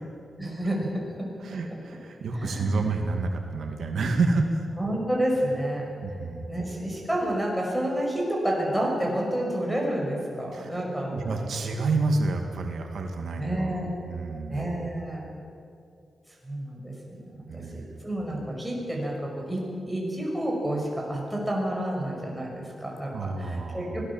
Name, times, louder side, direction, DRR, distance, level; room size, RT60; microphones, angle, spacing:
voice 1, 0.4-1.1 2.3-2.8 4.8-5.8 6.1-6.2 6.5-11.5 13.4-14.0 14.5-15.3 16.4-24.1, right 1 dB, 5° right, -2 dB, 6.2 m, -30 dB
voice 2, 1.4-4.6 6.0-6.7 10.5-10.8 11.1-14.6 17.5-18.0 23.1-24.1, right 3 dB, 80° right, 3 dB, 2.2 m, -29 dB
24.5 x 18.0 x 7.4 m, 2.5 s
wide cardioid pair, 120°, 0 cm